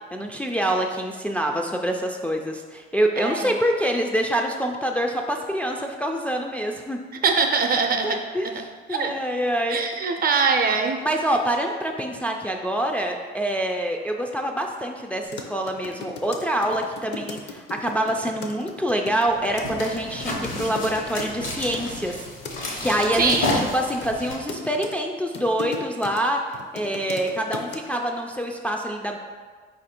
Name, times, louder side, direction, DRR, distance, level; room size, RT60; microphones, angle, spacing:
voice 1, 0.1-7.0 8.0-8.5 8.9-9.8 11.0-22.2 22.8-26.4 26.7-29.2, right 1 dB, 5° left, 1 dB, 0.3 m, -26 dB
voice 2, 3.2-3.5 7.2-8.2 8.9-9.1 9.7-11.0 23.1-23.6, right 5 dB, 50° right, 4 dB, 0.6 m, -22 dB
sound 1, 15.2-22.6 23.0-23.6 24.0-26.2 26.5-27.8, left 4 dB, 60° left, 0.6 m, -37 dB
sound 2, 19.3-24.3, left 2 dB, 85° left, 1.1 m, -31 dB
4.5 x 2.6 x 4.2 m, 1.5 s
cardioid pair, 90°, 20 cm